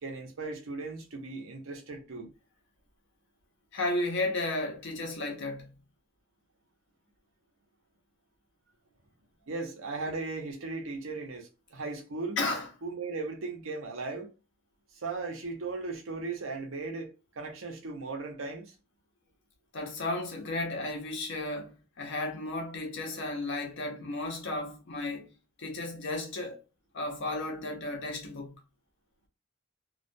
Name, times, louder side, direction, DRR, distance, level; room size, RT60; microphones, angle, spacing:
voice 1, 0.0-2.3 9.5-12.4 12.8-14.3 14.9-17.1 17.4-18.7, right 3 dB, 75° right, 0.7 m, -37 dB
voice 2, 3.7-5.7 12.4-12.7 19.7-26.6 26.9-28.6, left 2 dB, 65° left, 0.8 m, -34 dB
2.3 x 2.2 x 2.6 m
head